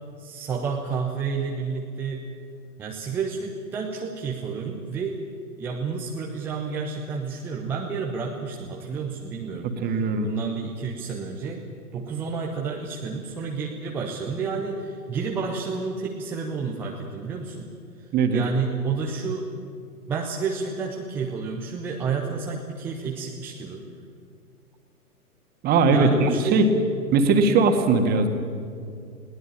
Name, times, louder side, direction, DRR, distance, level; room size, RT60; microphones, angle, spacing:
voice 1, 0.2-2.3 2.8-5.2 5.6-11.6 11.9-17.7 18.3-19.5 20.1-23.8 25.9-26.6, right 5 dB, 5° right, 0 dB, 0.5 m, -30 dB
voice 2, 9.6-10.3 18.1-18.4 25.6-26.7 27.1-28.3, right 4 dB, 20° right, 6 dB, 1.9 m, -20 dB
21.5 x 17.5 x 8.9 m, 2.4 s
figure-of-eight pair, 115°, 46 cm